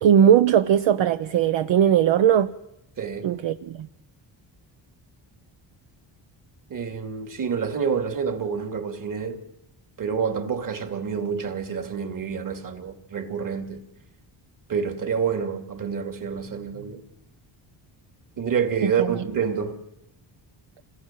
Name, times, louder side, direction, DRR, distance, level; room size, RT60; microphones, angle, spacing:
voice 1, 0.0-2.5 3.2-3.9 18.8-18.9, right 9 dB, 70° right, 1.0 m, -19 dB
voice 2, 3.0-3.3 6.7-9.4 10.0-13.8 14.7-17.0 18.4-19.8, right 6 dB, 40° right, 2.8 m, -28 dB
28.0 x 20.5 x 7.6 m
cardioid pair, 155°, 47 cm